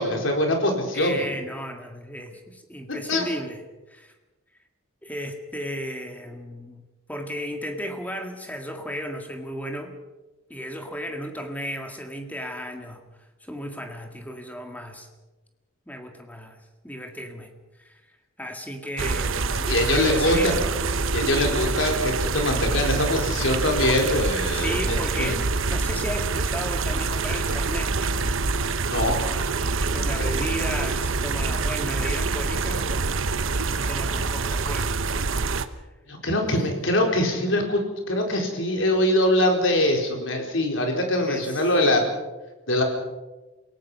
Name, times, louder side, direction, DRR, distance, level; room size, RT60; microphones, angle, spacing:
voice 1, 0.0-1.3 3.1-3.2 19.7-20.5 21.1-25.4 28.9-29.2 30.1-30.3 36.1-37.8 38.1-42.0 42.7-42.8, left 1 dB, 65° left, 2 dB, 4.3 m, -23 dB
voice 2, 0.9-3.6 3.9-4.1 5.0-6.8 7.1-9.9 10.5-13.0 13.4-15.1 15.9-16.6 16.8-17.5 17.8-18.0 18.4-20.7 24.5-27.9 29.9-33.2 33.6-35.0 41.3-41.6, equal, 5° left, 5 dB, 1.9 m, -34 dB
sound 1, 19.0-35.7, right 4 dB, 70° right, 1.0 m, -26 dB
28.0 x 18.0 x 5.6 m, 1.1 s
head